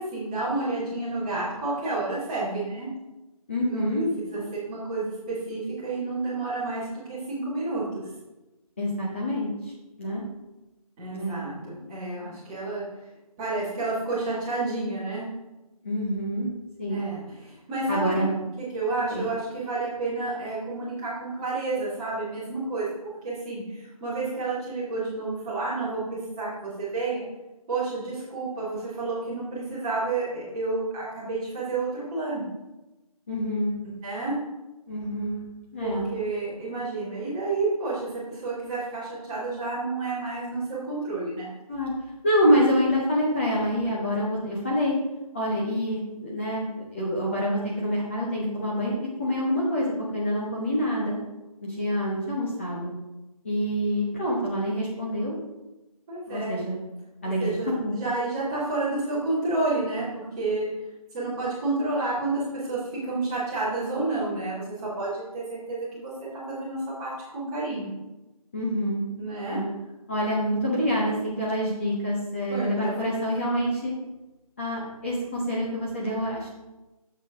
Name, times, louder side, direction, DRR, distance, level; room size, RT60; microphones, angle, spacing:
voice 1, 0.0-2.9 3.7-3.9 4.3-7.8 11.0-12.9 13.4-15.3 16.9-18.1 18.6-22.9 23.2-27.2 27.7-32.4 34.0-34.4 35.8-41.5 56.1-56.6 57.4-60.7 61.1-66.1 66.5-67.9 69.2-69.6 72.5-73.2, right 3 dB, 10° right, -10 dB, 1.7 m, -30 dB
voice 2, 3.5-4.1 4.3-4.4 8.8-9.5 10.0-10.2 11.1-11.9 12.2-12.4 15.8-16.5 16.8-17.1 17.9-18.3 19.1-19.2 33.3-33.8 34.9-35.4 35.7-36.1 41.7-41.9 42.2-45.0 45.3-48.9 49.2-51.2 51.6-52.9 53.4-55.3 56.3-56.8 57.2-57.9 68.5-69.0 69.4-69.7 70.1-73.9 74.6-76.5, equal, 20° left, -6 dB, 1.0 m, -26 dB
7.9 x 7.0 x 3.6 m, 1.0 s
figure-of-eight pair, 170°, 19 cm